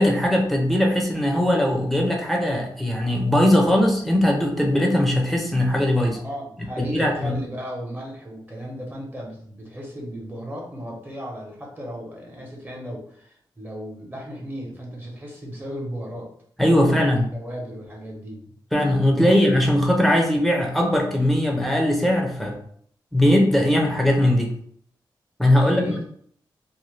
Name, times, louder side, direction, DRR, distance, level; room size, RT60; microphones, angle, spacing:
voice 1, 0.0-6.2 6.8-7.3 16.6-17.3 18.7-22.6 23.1-24.5 25.4-26.0, left 1 dB, ahead, 1 dB, 0.6 m, -20 dB
voice 2, 6.1-16.3 16.8-18.5 19.1-19.4 25.6-26.0, equal, 25° right, -2 dB, 1.0 m, -35 dB
2.7 x 2.1 x 3.2 m, 0.62 s
cardioid pair, 90°, 8 cm